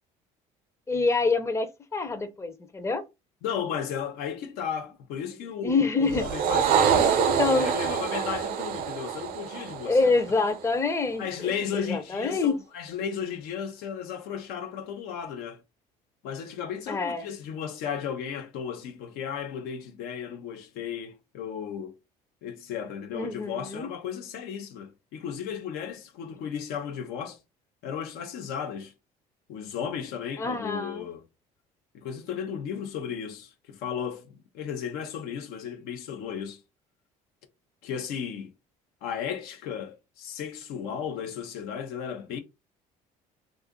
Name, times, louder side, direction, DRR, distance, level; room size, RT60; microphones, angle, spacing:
voice 1, 0.9-3.0 5.6-6.2 7.0-7.1 7.4-8.0 9.8-12.5 16.9-17.3 23.1-23.9 30.4-31.1, left 3 dB, 15° left, 0.6 m, -26 dB
voice 2, 3.4-10.1 11.2-15.6 16.2-21.9 22.4-27.4 27.8-28.9 29.5-31.2 31.9-36.6 37.8-38.5 39.0-42.4, left 8 dB, 75° left, 0.7 m, -34 dB
sound 1, 6.1-10.7, right 8 dB, 65° right, 0.6 m, -26 dB
2.7 x 2.5 x 3.5 m
supercardioid pair, 90°, 16 cm